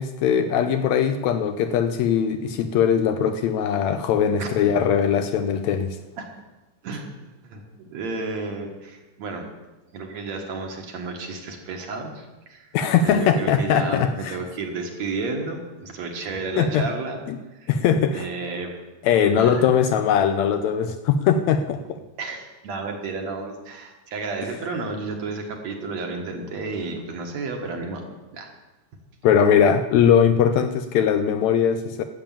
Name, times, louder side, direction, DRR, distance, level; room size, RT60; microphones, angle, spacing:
voice 1, 0.0-6.0 12.7-14.4 16.6-16.9 17.3-17.4 17.7-18.3 19.0-21.8 29.2-32.0, left 8 dB, 80° left, 9 dB, 1.7 m, -20 dB
voice 2, 7.4-9.5 9.9-12.7 13.0-17.2 17.6-17.7 18.1-18.7 19.3-19.7 22.2-28.0 28.3-28.5, right 3 dB, 60° right, 2 dB, 2.6 m, -32 dB
13.0 x 7.1 x 8.8 m, 1.1 s
omnidirectional pair, 3.7 m